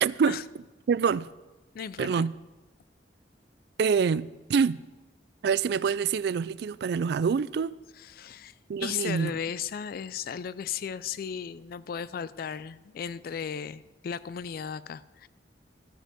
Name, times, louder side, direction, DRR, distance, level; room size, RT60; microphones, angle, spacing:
voice 1, 0.0-0.4 0.9-1.3 2.0-2.3 3.8-4.8 5.4-7.8 8.7-9.3, right 6 dB, 65° right, 0.3 m, -26 dB
voice 2, 1.7-2.2 8.0-15.3, left 7 dB, 55° left, 0.3 m, -36 dB
13.5 x 6.2 x 6.7 m
head